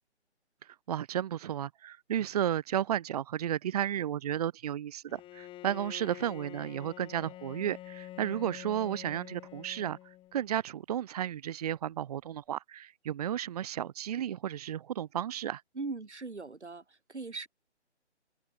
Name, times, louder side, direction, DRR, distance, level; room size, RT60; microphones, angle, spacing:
voice 1, 0.9-15.6, right 10 dB, 35° right, 1.5 m, -33 dB
Bowed string instrument, 5.1-10.5, left 14 dB, 15° left, 7.2 m, -47 dB
voice 2, 15.7-17.5, right 3 dB, 75° right, 5.7 m, -40 dB
open air
figure-of-eight pair, 140°, 35 cm